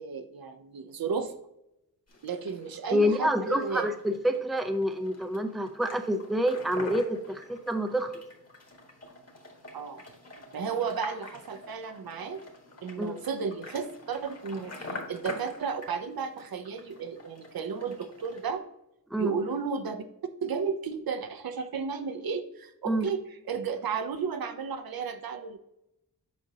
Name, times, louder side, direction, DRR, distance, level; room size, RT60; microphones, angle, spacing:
voice 1, 0.0-1.3 2.2-3.9 9.7-10.0 10.5-12.4 12.8-18.6 19.2-20.0 20.4-23.2 23.5-25.6, right 5 dB, 70° right, 8 dB, 0.7 m, -33 dB
sound 1, 2.1-18.5, left 2 dB, 40° left, 1.7 m, -46 dB
voice 2, 2.9-8.2 13.0-13.2 19.1-19.3 22.9-23.1, equal, ahead, 7 dB, 0.5 m, -27 dB
7.6 x 5.1 x 2.8 m, 0.86 s
wide cardioid pair, 90°, 38 cm